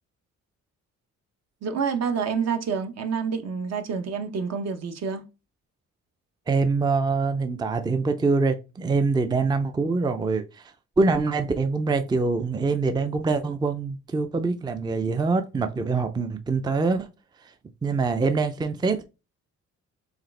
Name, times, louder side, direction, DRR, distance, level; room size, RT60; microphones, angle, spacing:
voice 1, 1.6-5.2, right 6 dB, 60° right, 0.9 m, -28 dB
voice 2, 6.5-17.1 17.8-19.0, right 4 dB, 15° right, 0.4 m, -24 dB
4.8 x 3.4 x 3.2 m
cardioid pair, 90°, 30 cm